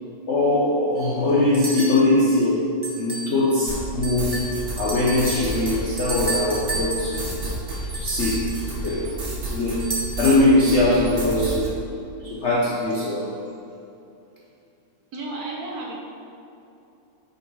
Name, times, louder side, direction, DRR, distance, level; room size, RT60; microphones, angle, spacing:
voice 1, 0.3-7.3 7.9-9.2 9.5-11.9 12.2-13.4, left 2 dB, 60° left, -3 dB, 0.7 m, -21 dB
sound 1, 1.0-1.1 1.5-2.0 2.8-3.3 3.7-3.8 4.0-9.0 9.8-10.8, right 1 dB, 15° right, 1.1 m, -32 dB
sound 2, 3.7-10.4 10.7-11.7, right 2 dB, 75° right, 2.3 m, -31 dB
voice 2, 15.1-15.9, right 2 dB, 55° right, -2 dB, 1.4 m, -32 dB
6.7 x 5.3 x 4.6 m, 2.8 s
omnidirectional pair, 2.2 m